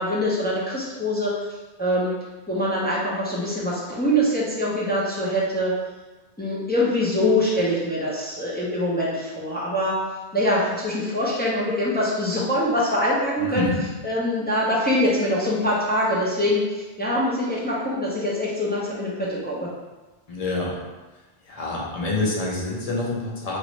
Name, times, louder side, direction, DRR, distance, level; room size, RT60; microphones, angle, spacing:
voice 1, 0.0-1.4 1.8-2.1 2.5-5.7 6.4-10.0 10.3-13.7 14.0-19.7, left 1 dB, 15° left, -7 dB, 0.4 m, -24 dB
voice 2, 13.4-14.0 20.3-20.8 21.4-23.6, left 2 dB, 40° left, -4 dB, 0.7 m, -27 dB
3.0 x 2.5 x 3.1 m, 1.2 s
omnidirectional pair, 1.1 m